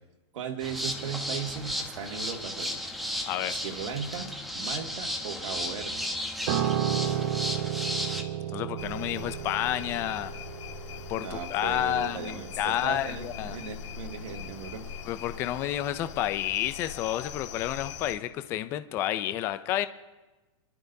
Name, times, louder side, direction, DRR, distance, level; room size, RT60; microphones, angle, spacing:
voice 1, 0.3-2.8 3.5-4.3 4.5-6.0 11.1-14.9 15.5-15.6, right 7 dB, 75° right, 2 dB, 2.1 m, -37 dB
sound 1, 0.6-8.2, left 1 dB, ahead, 0.8 m, -34 dB
Piano, 6.5-15.8 16.1-16.4, right 10 dB, 40° right, 0.8 m, -34 dB
voice 2, 8.5-10.3 11.1-13.6 15.1-19.9, left 13 dB, 15° left, 11 dB, 0.3 m, -30 dB
sound 2, 8.8-18.2, left 8 dB, 70° left, 1.8 m, -42 dB
26.5 x 11.5 x 2.7 m, 1.2 s
supercardioid pair, 170°, 16 cm